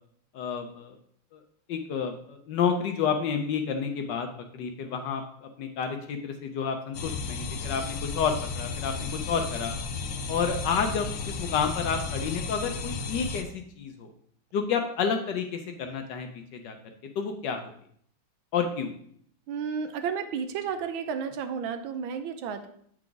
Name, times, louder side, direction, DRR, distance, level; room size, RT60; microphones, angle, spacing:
voice 1, 0.3-1.0 1.3-1.4 1.7-4.3 4.5-9.7 10.3-14.1 14.5-16.8 17.2-17.7 18.5-18.9, left 6 dB, 70° left, 6 dB, 1.2 m, -30 dB
sound 1, 6.9-13.4, left 4 dB, 85° left, 0.7 m, -34 dB
voice 2, 19.5-22.7, right 6 dB, 75° right, 8 dB, 1.4 m, -32 dB
8.7 x 4.7 x 3.8 m, 0.65 s
omnidirectional pair, 2.3 m